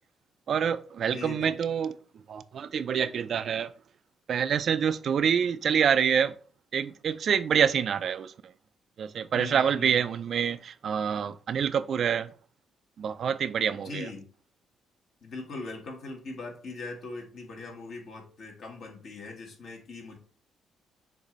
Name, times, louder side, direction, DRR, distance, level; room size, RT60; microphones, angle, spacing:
voice 1, 0.5-1.9 2.3-3.7 4.3-6.3 6.7-8.5 9.0-12.3 13.0-14.1, right 7 dB, 60° right, 0.3 m, -26 dB
voice 2, 1.1-1.5 9.3-10.0 13.7-14.3 15.2-20.2, left 3 dB, 60° left, 1.5 m, -40 dB
6.6 x 2.6 x 3.0 m
cardioid pair, 90°, 0 cm